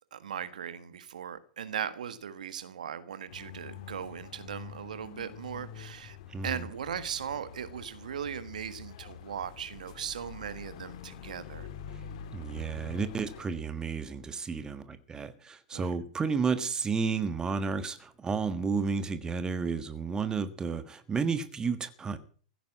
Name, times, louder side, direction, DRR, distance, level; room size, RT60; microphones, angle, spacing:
voice 1, 0.1-6.2 6.4-11.7 15.7-15.9, right 8 dB, 75° right, 1.6 m, -38 dB
sound 1, 3.3-13.4, left 8 dB, 60° left, 2.0 m, -46 dB
voice 2, 6.3-6.6 12.3-22.2, right 5 dB, 15° right, 1.5 m, -32 dB
16.0 x 9.2 x 7.5 m
hypercardioid pair, 100°, 4 cm